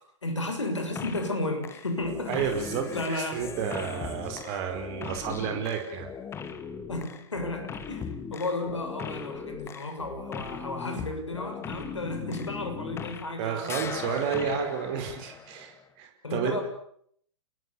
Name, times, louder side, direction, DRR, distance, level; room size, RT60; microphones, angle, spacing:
voice 1, 0.2-2.4 2.9-3.5 6.9-13.7 16.2-16.6, left 2 dB, 75° left, 5 dB, 6.9 m, -33 dB
sound 1, 1.0-1.4 1.6-13.4 13.6-15.8, left 6 dB, 15° left, 1.9 m, -39 dB
voice 2, 2.3-6.1 13.4-16.6, right 7 dB, 35° right, 5 dB, 4.9 m, -31 dB
30.0 x 21.0 x 7.1 m, 0.67 s
figure-of-eight pair, 105°, 16 cm